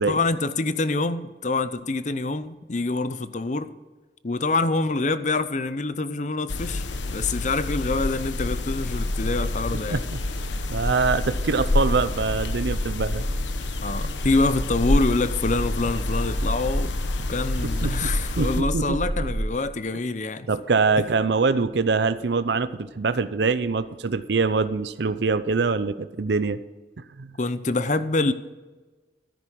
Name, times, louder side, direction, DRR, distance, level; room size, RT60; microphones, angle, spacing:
voice 1, 0.1-3.7 4.2-10.0 13.8-16.9 17.3-20.5 27.4-28.3, left 3 dB, 40° left, 13 dB, 0.7 m, -26 dB
sound 1, 6.5-18.6, left 2 dB, 85° left, 1.0 m, -28 dB
sound 2, 10.2-19.5, right 1 dB, 30° right, 0.8 m, -32 dB
voice 2, 10.7-13.2 17.8-18.1 18.4-19.0 20.5-26.6 27.2-27.3, right 4 dB, 70° right, 13 dB, 0.6 m, -24 dB
13.0 x 10.0 x 6.2 m, 1.3 s
head